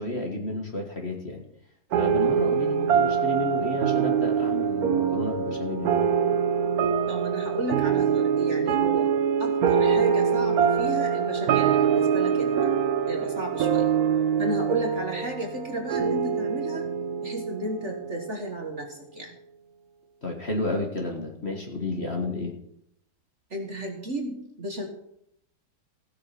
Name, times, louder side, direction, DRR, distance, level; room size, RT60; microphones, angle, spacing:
voice 1, 0.0-1.4 2.0-6.0 20.2-22.5, left 2 dB, 35° left, 1 dB, 1.7 m, -31 dB
sound 1, 1.9-18.7, right 7 dB, 60° right, 1.1 m, -24 dB
voice 2, 7.1-9.1 9.4-12.5 13.1-13.9 14.4-16.9 17.2-19.4 23.5-24.9, right 2 dB, 40° right, 2 dB, 1.5 m, -33 dB
16.0 x 6.7 x 5.9 m, 0.75 s
omnidirectional pair, 2.2 m